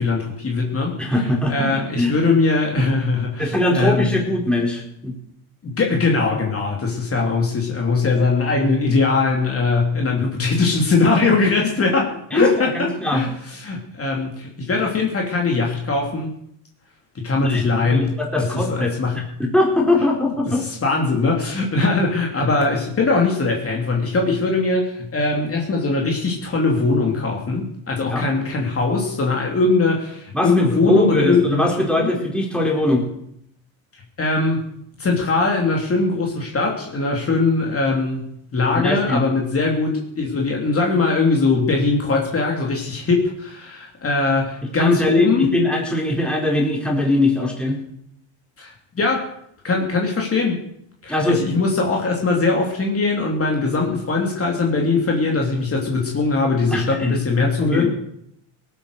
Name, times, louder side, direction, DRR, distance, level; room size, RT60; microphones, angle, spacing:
voice 1, 0.0-4.2 5.6-16.3 17.1-19.2 20.5-31.6 32.0-32.1 34.2-34.6 35.0-38.2 38.5-45.5 48.6-49.3 49.6-50.6 51.0-57.9, left 3 dB, 30° left, 0 dB, 3.0 m, -21 dB
voice 2, 1.0-2.1 3.4-5.2 12.3-12.5 12.7-13.3 17.4-18.9 19.4-20.6 28.1-28.3 30.3-33.0 38.8-39.2 44.7-47.8 51.1-51.4 56.7-57.9, left 1 dB, ahead, -1 dB, 4.3 m, -21 dB
18.5 x 8.9 x 6.6 m, 0.73 s
cardioid pair, 115°, 46 cm